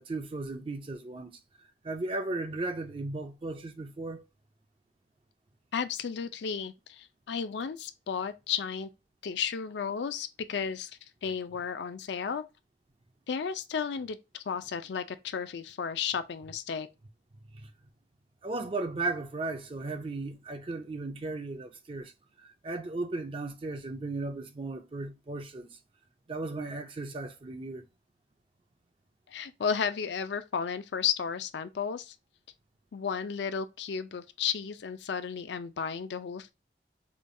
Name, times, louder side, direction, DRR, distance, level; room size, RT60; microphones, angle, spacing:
voice 1, 0.0-1.4 1.8-4.2 17.5-17.7 18.4-22.1 22.4-25.8 26.3-27.9, right 2 dB, 30° right, 0.4 m, -36 dB
voice 2, 5.7-8.9 9.2-10.9 11.2-12.4 13.3-16.9 29.3-32.1 32.9-36.5, left 7 dB, 75° left, 0.4 m, -33 dB
4.9 x 2.3 x 2.5 m
head